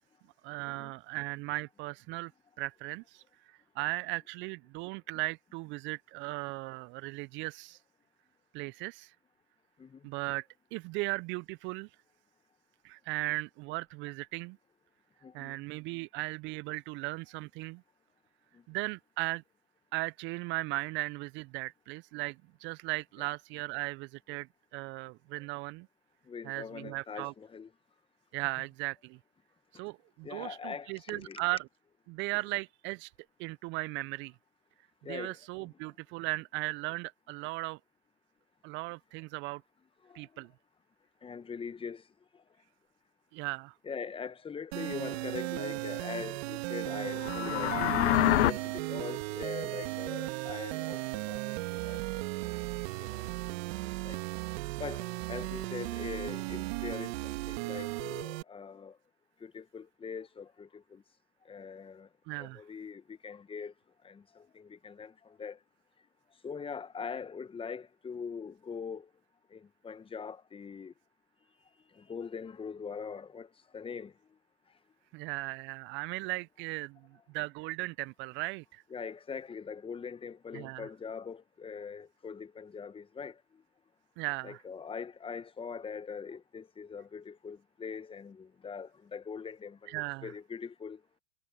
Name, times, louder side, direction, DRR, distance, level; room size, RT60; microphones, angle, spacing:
voice 1, 0.4-2.3 2.6-7.8 8.5-9.1 10.0-11.9 12.8-14.6 15.3-17.8 18.7-19.4 19.9-24.5 24.7-25.9 26.4-27.3 28.3-29.2 29.7-31.7 32.1-33.1 33.4-34.3 35.1-37.8 38.6-39.6 40.1-40.5 43.3-43.7 62.3-62.6 75.1-77.0 77.3-78.8 80.5-80.9 84.2-84.6 89.9-90.3, right 23 dB, 30° right, 0.5 m, -37 dB
voice 2, 15.2-15.6 18.5-18.6 23.2-23.3 26.3-27.7 30.2-31.4 35.0-35.7 40.0-40.4 41.2-42.0 43.8-48.0 48.4-52.0 52.4-52.6 53.0-54.2 54.8-59.0 59.4-61.0 61.4-62.1 62.4-63.7 64.0-65.6 66.4-69.1 69.5-70.9 71.9-74.1 78.9-83.4 84.4-91.0, left 6 dB, 15° left, 1.3 m, -42 dB
sound 1, 44.7-58.4, right 22 dB, 55° right, 2.7 m, -36 dB
sound 2, 47.1-48.5, left 16 dB, 60° left, 0.7 m, -26 dB
hypercardioid pair, 105°, 38 cm